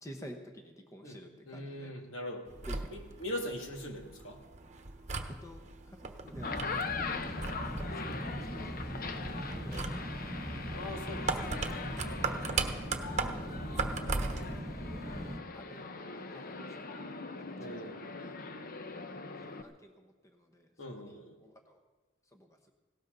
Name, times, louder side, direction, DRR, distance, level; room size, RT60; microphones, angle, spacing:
voice 1, 0.0-1.9 2.7-2.8 5.4-7.4 7.6-10.6 11.9-12.2 12.5-13.5 14.0-14.7 15.1-15.9 16.2-19.0 19.4-20.7 21.0-21.8 22.3-22.7, equal, 15° left, 4 dB, 1.0 m, -53 dB
voice 2, 1.0-4.4 10.7-11.6 12.0-12.9 13.8-14.3 15.0-15.1 17.6-18.0 20.8-21.4, left 1 dB, 70° left, 2 dB, 2.3 m, -42 dB
sound 1, 2.5-14.6, right 4 dB, 35° right, 1.1 m, -39 dB
sound 2, 6.3-19.6, left 4 dB, 45° left, 0.9 m, -41 dB
sound 3, 6.3-15.4, right 1 dB, 15° right, 0.8 m, -40 dB
18.5 x 17.5 x 4.0 m, 1.2 s
head